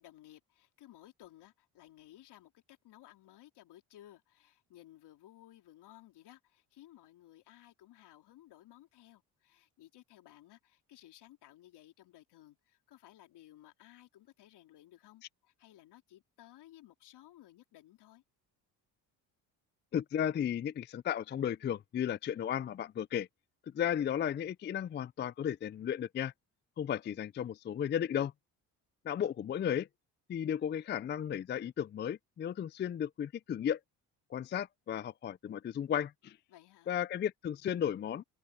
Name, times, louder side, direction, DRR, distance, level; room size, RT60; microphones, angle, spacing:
voice 1, 0.0-18.2 36.5-36.9, left 14 dB, 75° left, 3.7 m, -58 dB
voice 2, 19.9-23.3 23.7-26.3 26.8-28.3 29.0-29.9 30.3-33.8 34.3-36.4 36.9-38.2, left 9 dB, 30° left, 0.4 m, -34 dB
supercardioid pair, 75°, 41 cm